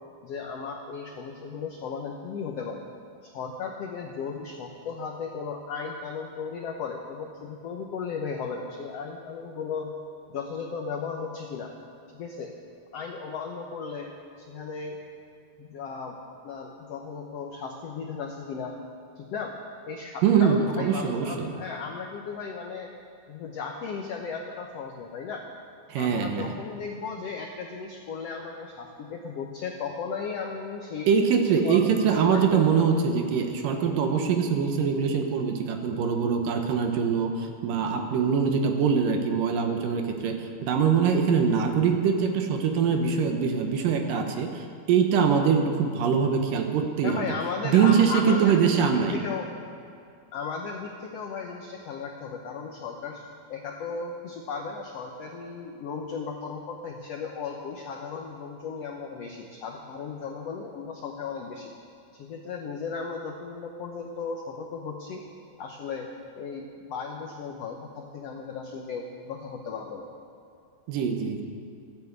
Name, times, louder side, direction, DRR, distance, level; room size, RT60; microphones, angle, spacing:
voice 1, 0.2-2.8 3.2-9.9 10.3-11.7 12.1-12.5 12.9-15.0 15.6-16.2 16.4-18.8 19.2-19.5 19.8-22.9 23.3-25.4 25.9-32.6 47.0-49.5 50.3-61.7 62.1-65.2 65.6-66.1 66.4-70.1, left 5 dB, 80° left, 2 dB, 1.4 m, -35 dB
voice 2, 20.2-21.5 25.9-26.5 31.1-47.3 47.6-49.2 70.9-71.4, right 6 dB, 70° right, 4 dB, 2.6 m, -23 dB
14.0 x 9.6 x 8.1 m, 2.5 s
omnidirectional pair, 4.2 m